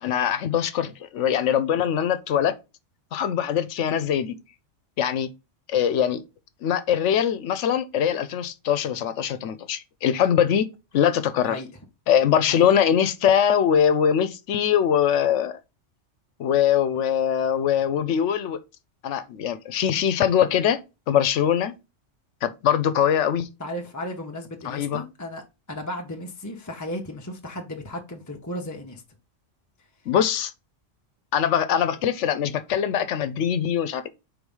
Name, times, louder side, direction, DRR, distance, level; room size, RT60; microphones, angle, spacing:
voice 1, 0.0-2.5 3.1-4.4 5.0-5.3 5.7-6.2 6.6-10.7 10.9-11.6 12.1-15.6 16.4-18.6 19.0-20.8 21.1-21.7 22.4-23.5 24.6-25.0 30.1-30.5 31.3-34.1, left 9 dB, 75° left, 1.0 m, -22 dB
voice 2, 23.6-25.4 25.7-29.0, left 1 dB, 15° left, 0.8 m, -35 dB
4.7 x 3.7 x 5.4 m
omnidirectional pair, 1.3 m